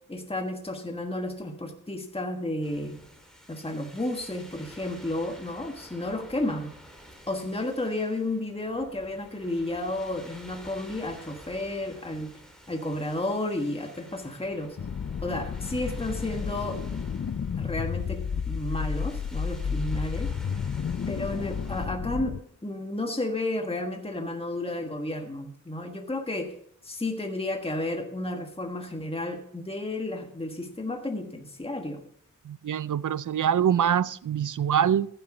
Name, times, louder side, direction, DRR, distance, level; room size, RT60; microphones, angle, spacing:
voice 1, 0.1-3.0 3.5-6.7 7.3-12.3 12.7-14.8 15.2-16.8 17.6-18.2 18.5-20.3 21.1-22.4 22.6-26.5 26.8-32.0, left 1 dB, 15° left, 1.4 m, -32 dB
sound 1, 2.6-21.9, equal, ahead, 3.6 m, -50 dB
sound 2, 14.8-22.4, left 6 dB, 50° left, 0.5 m, -31 dB
voice 2, 32.4-35.1, right 9 dB, 70° right, 0.5 m, -24 dB
14.5 x 7.9 x 5.0 m
wide cardioid pair, 55°, 32 cm